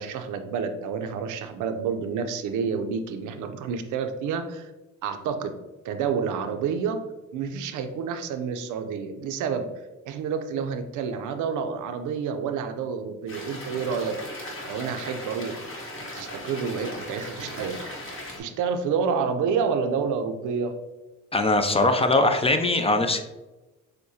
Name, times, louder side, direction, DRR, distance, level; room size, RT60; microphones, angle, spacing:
voice 1, 0.0-4.7 5.0-5.5 5.8-7.0 7.3-9.7 10.0-14.2 14.7-15.6 16.1-17.9 18.4-20.7, right 6 dB, 80° right, 7 dB, 0.5 m, -29 dB
sound 1, 13.3-18.4, left 1 dB, 45° left, 1.2 m, -38 dB
voice 2, 21.3-23.2, left 2 dB, 20° left, 7 dB, 0.4 m, -21 dB
6.3 x 2.1 x 2.7 m, 1.1 s
cardioid pair, 90°, 30 cm